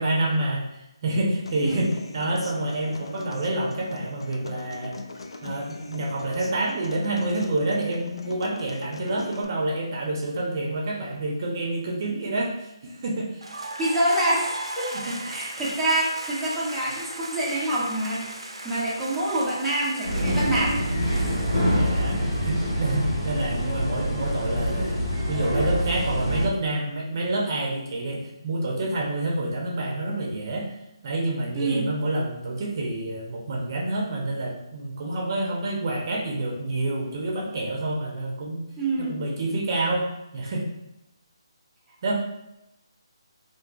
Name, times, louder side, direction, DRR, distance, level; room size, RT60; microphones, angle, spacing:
voice 1, 0.0-5.0 5.4-13.6 14.9-15.6 21.7-25.0 25.3-30.7 31.0-38.6 39.0-40.1 40.3-40.7 42.0-42.1, right 2 dB, 45° right, -2 dB, 0.6 m, -28 dB
Human voice / Acoustic guitar, 1.5-9.4, left 3 dB, 75° left, 0.4 m, -40 dB
sound 1, 13.4-23.2, right 2 dB, 85° right, 0.5 m, -38 dB
voice 2, 13.8-20.8 21.1-21.5 31.5-31.9 38.8-39.2, right 1 dB, 5° right, -10 dB, 0.7 m, -26 dB
sound 2, 20.0-26.5, equal, 55° left, 1.5 m, -25 dB
3.5 x 2.6 x 2.3 m, 0.88 s
figure-of-eight pair, 150°, 3 cm